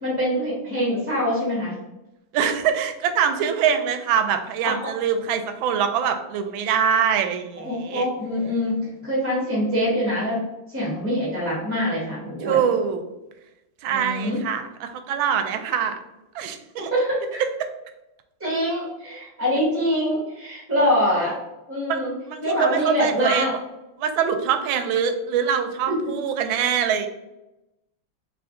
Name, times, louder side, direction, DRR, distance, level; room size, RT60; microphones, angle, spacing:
voice 1, 0.0-1.8 4.6-4.9 7.6-10.4 10.7-12.6 13.9-14.4 16.8-17.4 18.4-21.4 21.7-22.1 22.4-23.5 25.9-26.0, equal, 10° right, -5 dB, 0.8 m, -24 dB
voice 2, 2.3-8.1 12.4-13.0 13.8-16.0 16.3-16.9 21.9-22.0 22.3-23.6 24.0-27.1, right 8 dB, 85° right, 7 dB, 1.4 m, -24 dB
3.5 x 3.4 x 3.6 m, 0.95 s
omnidirectional pair, 2.1 m